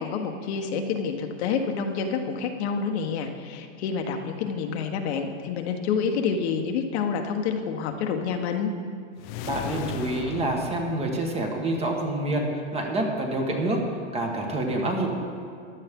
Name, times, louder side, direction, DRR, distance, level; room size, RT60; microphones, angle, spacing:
voice 1, 0.0-8.7, left 6 dB, 60° left, 4 dB, 1.2 m, -28 dB
sound 1, 9.2-11.8, left 10 dB, 40° left, 0.5 m, -36 dB
voice 2, 9.4-13.8 14.1-15.2, right 2 dB, 15° right, 1 dB, 1.3 m, -27 dB
15.0 x 10.5 x 3.7 m, 2.4 s
supercardioid pair, 150°, 37 cm